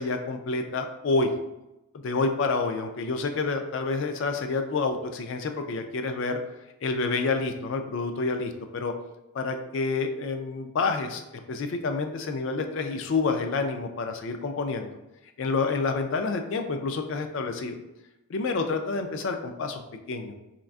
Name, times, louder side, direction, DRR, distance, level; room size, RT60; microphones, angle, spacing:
voice 1, 0.0-1.4 1.9-6.4 6.8-8.9 9.3-14.9 15.4-17.8 18.3-19.8 20.1-20.3, left 3 dB, 60° left, 6 dB, 0.3 m, -28 dB
3.6 x 2.4 x 2.3 m, 0.94 s
head